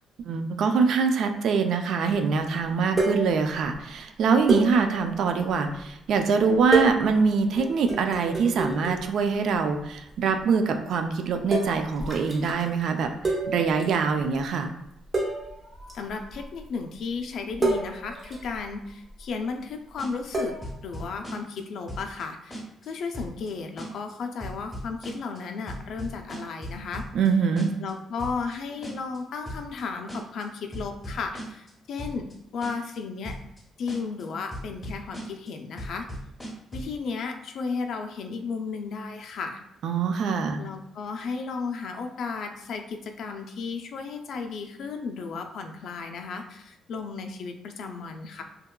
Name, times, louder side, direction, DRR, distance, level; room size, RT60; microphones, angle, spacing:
voice 1, 0.2-14.7 27.1-27.7 39.8-40.6, right 5 dB, 70° right, 6 dB, 0.3 m, -24 dB
sound 1, 3.0-3.8 4.5-5.9 6.5-9.3 9.5-10.0 10.3-10.4 11.5-12.8 13.2-14.0 14.2-14.4 14.8-14.9 15.1-16.7 17.5-19.2 20.3-20.7, right 3 dB, 30° right, 0.7 m, -30 dB
voice 2, 15.9-20.5 20.8-27.0 27.8-32.3 32.5-33.4 33.8-36.1 36.7-39.6 40.6-48.4, left 4 dB, 70° left, 5 dB, 0.3 m, -34 dB
sound 2, 20.0-20.3 20.6-21.6 21.9-22.2 22.5-22.9 23.1-23.5 23.8-24.1 24.4-25.4 25.7-27.3 27.6-27.9 28.2-28.6 28.8-29.2 29.5-29.8 30.1-30.4 30.7-31.7 32.0-32.3 32.6-33.0 33.2-33.6 33.9-34.2 34.5-35.5 35.8-36.9, equal, 15° left, 1.0 m, -37 dB
2.8 x 2.2 x 2.2 m, 0.82 s
cardioid pair, 90°, 0 cm